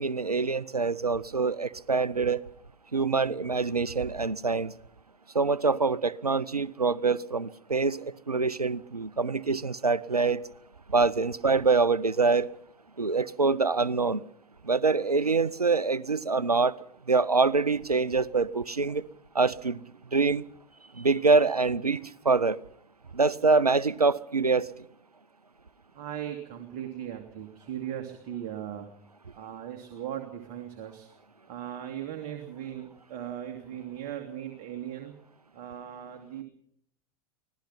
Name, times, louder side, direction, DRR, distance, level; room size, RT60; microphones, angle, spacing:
voice 1, 0.0-2.4 2.9-4.7 5.3-10.4 10.9-12.5 13.0-14.2 14.6-16.7 17.1-19.0 19.3-19.8 20.1-20.4 20.9-22.0 22.2-22.6 23.1-24.7, right 4 dB, 90° right, 0.7 m, -25 dB
voice 2, 25.9-28.9 29.3-31.1 31.5-35.1 35.5-36.4, right 10 dB, 40° right, 2.6 m, -38 dB
24.5 x 17.5 x 5.9 m
figure-of-eight pair, 90°, 19 cm